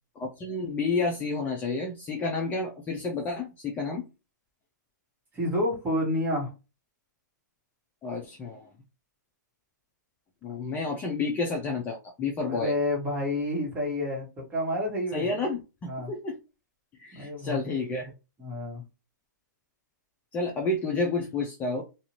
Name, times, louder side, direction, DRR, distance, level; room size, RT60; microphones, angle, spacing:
voice 1, 0.2-4.0 8.0-8.7 10.4-12.7 15.1-16.4 16.9-18.1 20.3-21.8, left 3 dB, 15° left, 0.5 m, -30 dB
voice 2, 5.3-6.5 12.5-15.3 15.8-16.1 17.1-17.6 18.4-18.8, left 1 dB, 15° right, 1.3 m, -29 dB
2.7 x 2.4 x 3.0 m
hypercardioid pair, 140°, 10 cm